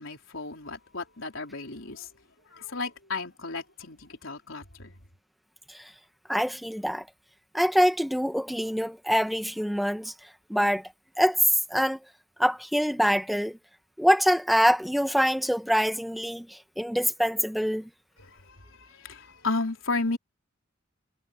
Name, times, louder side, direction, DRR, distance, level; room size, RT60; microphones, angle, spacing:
voice 1, 0.0-2.1 2.5-4.9 18.2-20.2, left 3 dB, 70° left, 4.5 m, -34 dB
voice 2, 6.3-7.0 7.5-10.1 10.5-10.8 11.2-11.4 11.7-12.0 12.4-13.6 14.0-17.9, equal, ahead, 1.6 m, -25 dB
head